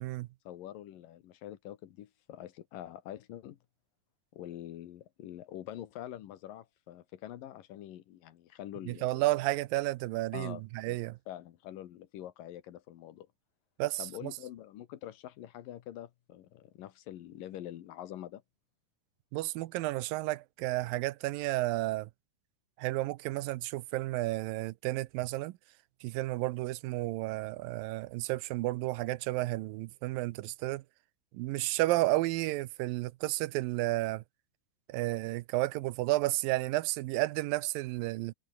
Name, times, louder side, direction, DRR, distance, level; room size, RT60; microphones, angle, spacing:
voice 1, 0.4-3.6 4.3-9.3 10.3-11.0 11.3-13.3 14.0-18.4, left 12 dB, 75° left, 3.0 m, -45 dB
voice 2, 8.9-11.2 13.8-14.1 19.3-22.1 22.8-25.5 26.0-30.8 31.3-34.2 34.9-38.3, right 18 dB, 85° right, 2.5 m, -32 dB
omnidirectional pair, 4.0 m